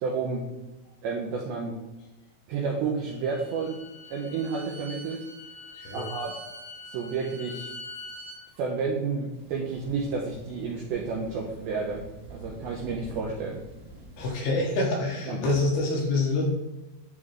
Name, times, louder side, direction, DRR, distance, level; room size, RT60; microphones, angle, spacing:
voice 1, 0.0-0.5 1.0-1.8 2.5-3.8 4.1-5.2 5.9-6.3 6.9-7.7 8.6-12.0 12.3-13.6 15.3-15.4, right 5 dB, 80° right, -1 dB, 2.2 m, -30 dB
Bowed string instrument, 3.0-8.4, left 2 dB, 50° left, 2.9 m, -43 dB
voice 2, 5.7-6.1 14.2-16.4, left 2 dB, 75° left, -1 dB, 2.6 m, -26 dB
Thunder, 9.3-14.3, right 1 dB, 60° right, 1.1 m, -46 dB
10.5 x 3.6 x 3.2 m, 1.0 s
omnidirectional pair, 5.2 m